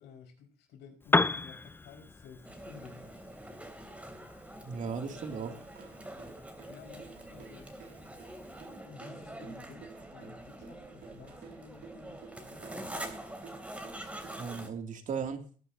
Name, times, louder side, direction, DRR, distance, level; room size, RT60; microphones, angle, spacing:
voice 1, 0.0-3.2 4.9-5.5 6.7-7.7 8.8-13.2, left 6 dB, 80° left, 2 dB, 5.4 m, -53 dB
Piano, 1.0-8.8, left 3 dB, 10° left, 0.5 m, -36 dB
sound 1, 2.4-14.7, right 1 dB, 10° right, 3.1 m, -45 dB
voice 2, 4.6-5.6 14.3-15.4, right 6 dB, 50° right, 5 dB, 2.8 m, -36 dB
sound 2, 5.4-14.6, right 6 dB, 65° right, 2.6 m, -53 dB
19.5 x 11.0 x 2.8 m, 0.41 s
cardioid pair, 110°, 17 cm